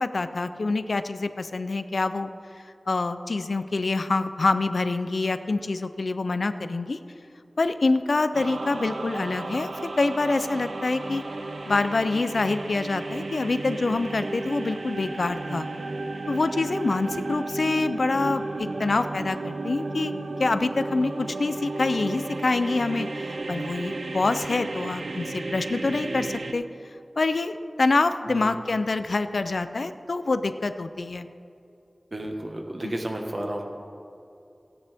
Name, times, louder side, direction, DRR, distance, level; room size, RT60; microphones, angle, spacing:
voice 1, 0.0-2.3 2.9-7.0 7.6-11.2 11.7-15.7 16.3-20.1 20.4-26.7 27.2-31.3 32.8-32.9, left 3 dB, 75° left, 11 dB, 0.5 m, -26 dB
sound 1, 8.3-26.5, right 2 dB, 80° right, 0.6 m, -33 dB
voice 2, 32.1-33.7, right 1 dB, 45° right, 2 dB, 1.4 m, -32 dB
15.5 x 9.6 x 3.5 m, 2.7 s
wide cardioid pair, 65°, 0 cm